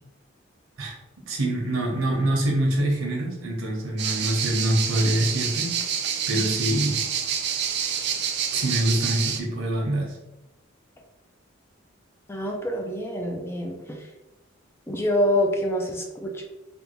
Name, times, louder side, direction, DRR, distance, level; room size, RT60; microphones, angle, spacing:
voice 1, 1.3-5.8 6.3-6.9 8.5-10.2, right 1 dB, 85° right, -1 dB, 1.0 m, -25 dB
sound 1, 4.0-9.4, right 8 dB, 55° right, 0.4 m, -27 dB
voice 2, 12.3-14.0 14.9-16.4, equal, 10° left, 1 dB, 0.4 m, -26 dB
3.5 x 2.5 x 3.0 m, 0.97 s
head